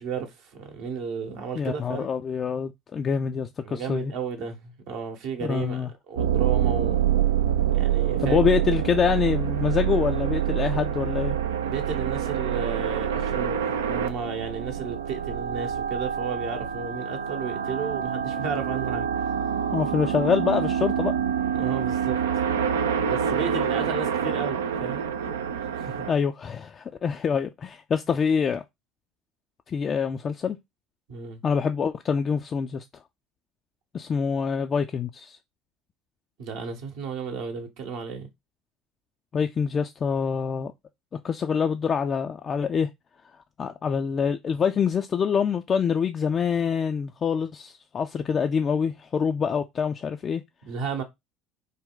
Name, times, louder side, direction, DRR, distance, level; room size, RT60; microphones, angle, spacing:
voice 1, 0.0-2.1 3.6-7.0 7.7-8.4 11.6-19.3 21.5-22.2 22.8-26.1 31.1-31.4 36.4-38.3 50.6-51.0, right 6 dB, 65° right, 0.9 m, -33 dB
voice 2, 1.6-4.1 5.5-5.9 8.2-11.4 19.7-21.1 26.1-28.6 29.7-30.6 31.4-32.8 33.9-35.4 39.3-40.7 41.2-42.9 43.6-50.4, left 6 dB, 35° left, 0.3 m, -25 dB
sound 1, 6.2-26.1, right 9 dB, 80° right, 0.3 m, -26 dB
3.4 x 2.2 x 3.7 m
hypercardioid pair, 65°, 0 cm